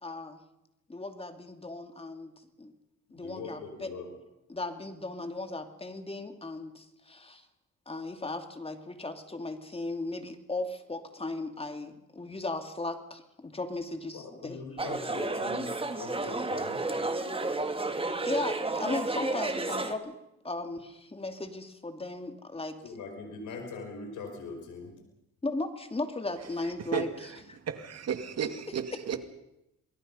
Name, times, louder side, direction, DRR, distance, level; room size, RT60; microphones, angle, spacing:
voice 1, 0.0-0.4 0.9-2.3 2.6-2.7 3.1-3.9 4.5-7.4 7.9-14.6 18.2-20.2 20.4-22.8 25.4-27.1 27.5-27.6, left 2 dB, 20° left, 2.6 m, -36 dB
voice 2, 3.1-4.1 14.1-16.9 22.8-25.0, left 4 dB, 80° left, 5.2 m, -41 dB
sound 1, 14.8-19.9, right 2 dB, 20° right, 2.1 m, -31 dB
voice 3, 26.9-27.4 27.6-29.2, right 8 dB, 55° right, 2.2 m, -33 dB
28.0 x 21.0 x 5.5 m
cardioid pair, 90°, 30 cm